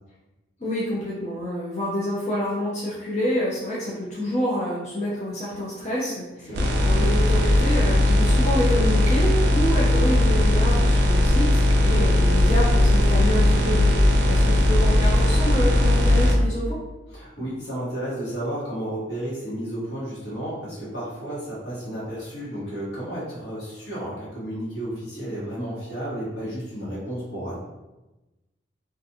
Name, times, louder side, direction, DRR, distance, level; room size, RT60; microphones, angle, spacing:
voice 1, 0.6-6.5 6.8-14.0 14.3-16.8, equal, 40° left, -8 dB, 0.6 m, -27 dB
sound 1, 6.5-16.3, left 1 dB, 75° right, 0.4 m, -18 dB
voice 2, 17.1-27.5, right 1 dB, 80° left, -8 dB, 1.2 m, -32 dB
2.4 x 2.3 x 2.7 m, 1.1 s
head